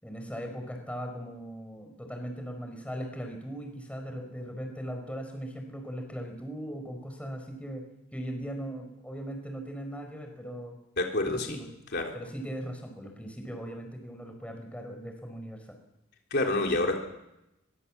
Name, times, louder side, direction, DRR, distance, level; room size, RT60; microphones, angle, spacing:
voice 1, 0.0-7.8 8.1-10.7 11.3-11.7 12.1-15.8, equal, 5° left, 4 dB, 4.8 m, -39 dB
voice 2, 11.0-11.6 11.9-12.2 16.3-17.0, left 2 dB, 55° left, 1 dB, 3.5 m, -27 dB
23.0 x 22.5 x 7.4 m, 0.88 s
head